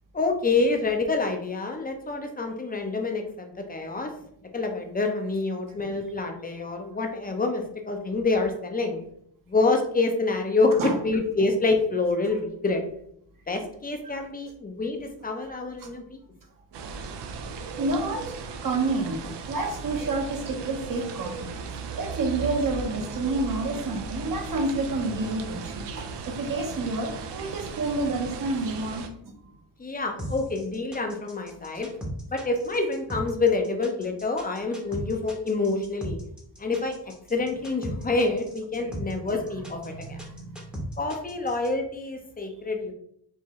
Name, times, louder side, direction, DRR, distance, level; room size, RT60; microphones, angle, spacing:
voice 1, 0.1-4.1 4.5-9.0 9.5-12.8 13.5-16.2 29.8-31.9 32.3-36.2 36.6-37.0 37.3-40.2 41.0-42.9, left 3 dB, 20° left, 4 dB, 0.6 m, -27 dB
sound 1, 16.7-29.1, right 5 dB, 70° right, 0.6 m, -36 dB
voice 2, 17.8-18.3 18.6-29.1 38.8-38.9 39.9-40.9, right 2 dB, 50° right, 3 dB, 1.0 m, -29 dB
sound 2, 30.2-41.7, equal, ahead, 0.9 m, -38 dB
4.6 x 2.6 x 3.1 m, 0.70 s
cardioid pair, 100°, 43 cm